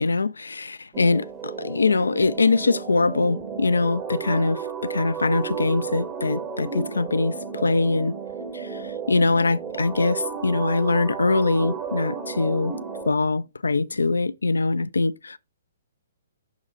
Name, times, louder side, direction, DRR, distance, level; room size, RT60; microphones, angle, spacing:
voice 1, 0.0-8.1 8.5-12.7 13.0-15.4, left 3 dB, 75° left, 0.4 m, -23 dB
sound 1, 0.9-13.1, right 6 dB, 25° right, 0.8 m, -33 dB
6.2 x 3.7 x 5.0 m
figure-of-eight pair, 125°, 0 cm